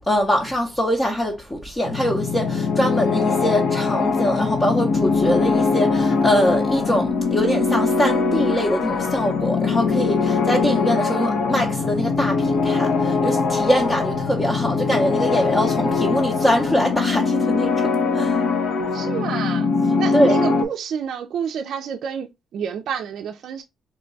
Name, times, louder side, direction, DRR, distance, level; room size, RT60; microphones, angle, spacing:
voice 1, 0.1-18.4 20.1-20.4, equal, 20° left, 0.7 m, -23 dB
sound 1, 1.9-20.6, left 4 dB, 65° left, 0.6 m, -22 dB
voice 2, 18.9-19.7 20.0-23.6, right 7 dB, 70° right, 0.4 m, -29 dB
3.0 x 2.2 x 3.8 m
cardioid pair, 90°, 0 cm